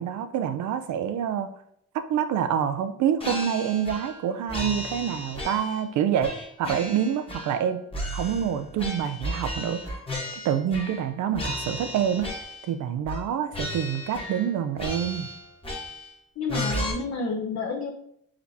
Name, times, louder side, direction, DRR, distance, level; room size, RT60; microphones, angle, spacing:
voice 1, 0.0-1.5 1.9-7.8 8.1-10.0 10.4-12.3 12.7-15.3, right 9 dB, 70° right, 10 dB, 0.5 m, -27 dB
sound 1, 3.2-4.2 4.5-5.9 6.2-7.6 7.9-11.1 11.3-12.7 13.1-13.3 13.5-14.5 14.8-16.2 16.5-16.9, left 1 dB, 20° left, 1.1 m, -34 dB
voice 2, 16.4-17.9, left 4 dB, 55° left, 0 dB, 0.8 m, -30 dB
5.0 x 3.3 x 2.7 m, 0.69 s
cardioid pair, 90°, 30 cm